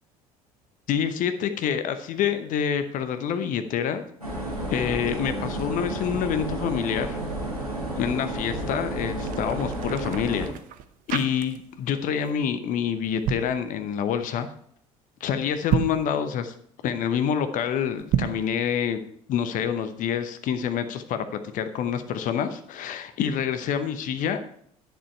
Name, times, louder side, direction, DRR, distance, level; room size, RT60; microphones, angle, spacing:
voice 1, 0.9-4.0 4.7-7.2 8.0-10.5 11.1-14.5 15.2-16.5 16.8-19.0 19.3-24.4, left 8 dB, 45° left, 9 dB, 0.9 m, -27 dB
sound 1, 4.2-10.5, right 1 dB, 90° right, 3.6 m, -31 dB
sound 2, 8.9-11.9 12.1-12.4 13.0-13.6 15.6-16.1 18.0-18.5, right 10 dB, 45° right, 0.8 m, -30 dB
10.0 x 7.0 x 4.5 m, 0.66 s
figure-of-eight pair, 60°, 19 cm